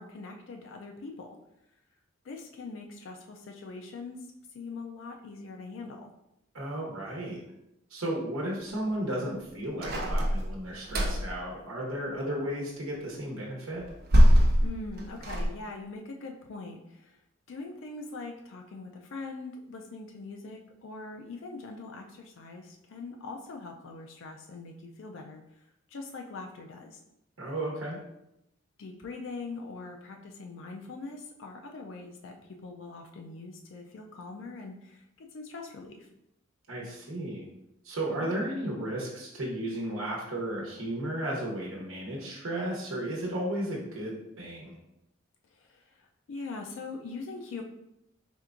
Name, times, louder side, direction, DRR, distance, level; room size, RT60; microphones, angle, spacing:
voice 1, 0.0-1.4 2.2-4.3 4.5-6.1 14.6-17.2 17.5-25.4 25.9-27.0 28.8-36.1 38.1-38.3 45.5-47.6, left 3 dB, 65° left, 2 dB, 0.4 m, -42 dB
voice 2, 6.5-7.4 7.9-13.8 27.4-28.0 36.7-37.5 37.8-44.8, right 1 dB, 80° right, -2 dB, 0.9 m, -34 dB
sound 1, 9.8-11.4 13.8-15.5, equal, 45° right, 0.6 m, -22 dB
4.4 x 3.3 x 2.5 m, 0.84 s
head